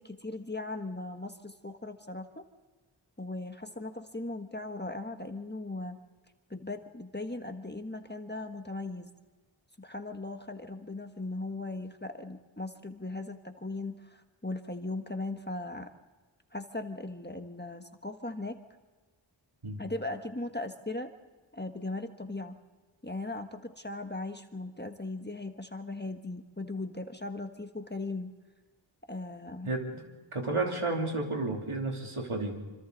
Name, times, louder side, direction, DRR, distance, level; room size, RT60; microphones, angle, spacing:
voice 1, 0.0-2.4 3.2-6.0 6.5-9.1 9.8-15.9 16.5-18.6 19.8-21.1 21.5-22.6 23.0-28.3 29.1-29.7, left 2 dB, 20° left, 6 dB, 1.4 m, -38 dB
voice 2, 29.6-30.0 30.3-32.6, right 2 dB, 85° right, 1 dB, 3.2 m, -32 dB
26.0 x 26.0 x 4.0 m, 1.3 s
wide cardioid pair, 50°, 49 cm